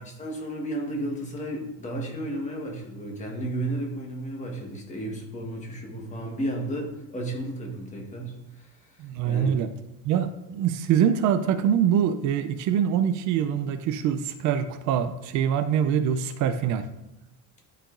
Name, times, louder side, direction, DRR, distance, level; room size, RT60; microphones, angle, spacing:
voice 1, 0.0-9.6, right 1 dB, 20° left, 1 dB, 1.3 m, -33 dB
voice 2, 9.0-9.7 10.0-16.9, right 8 dB, 60° right, 10 dB, 0.5 m, -24 dB
11.0 x 5.0 x 2.5 m, 0.88 s
cardioid pair, 155°, 33 cm